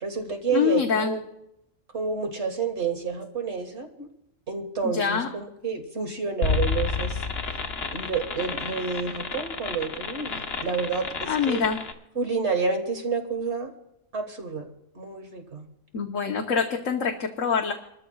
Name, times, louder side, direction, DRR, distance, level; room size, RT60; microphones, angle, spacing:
voice 1, 0.0-1.2 1.9-4.1 4.5-7.2 7.9-11.6 12.2-13.7 14.1-14.7 15.0-15.7, right 5 dB, 55° right, 5 dB, 1.9 m, -29 dB
voice 2, 0.5-1.1 4.8-5.3 11.3-11.8 15.9-17.7, left 6 dB, 65° left, 2 dB, 1.4 m, -25 dB
sound 1, 6.4-11.9, left 4 dB, 50° left, 1.3 m, -30 dB
28.0 x 13.5 x 2.3 m, 0.83 s
omnidirectional pair, 1.4 m